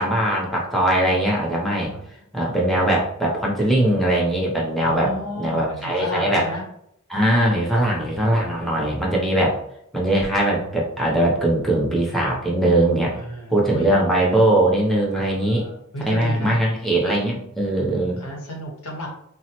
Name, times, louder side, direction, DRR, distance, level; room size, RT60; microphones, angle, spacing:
voice 1, 0.0-1.9 2.3-5.1 5.4-6.4 7.1-9.6 9.9-13.1 13.5-15.6 16.0-18.2, right 1 dB, ahead, -4 dB, 0.6 m, -20 dB
voice 2, 4.8-6.7 8.4-9.1 13.1-13.9 15.3-16.6 17.9-19.1, left 1 dB, 85° left, 0 dB, 0.9 m, -33 dB
3.6 x 2.0 x 2.8 m, 0.73 s
head